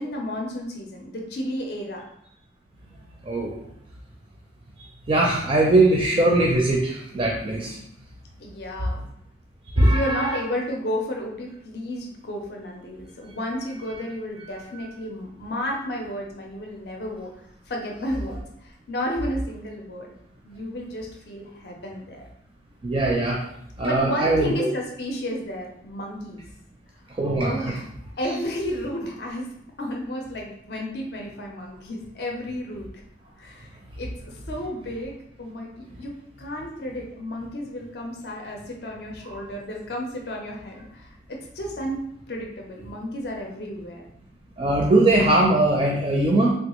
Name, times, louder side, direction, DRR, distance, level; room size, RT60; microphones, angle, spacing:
voice 1, 0.0-2.0 8.4-9.1 9.7-17.3 17.7-20.1 20.4-22.2 23.8-26.4 27.4-27.9 28.2-29.5 29.8-33.1 33.4-33.7 34.0-44.0, equal, 60° left, 1 dB, 0.5 m, -32 dB
voice 2, 3.3-3.6 5.1-7.8 9.7-10.4 22.8-23.4 23.8-24.7 27.2-27.7 39.3-39.4 44.6-46.5, right 2 dB, 30° right, -3 dB, 0.4 m, -20 dB
3.4 x 2.3 x 2.9 m, 0.73 s
head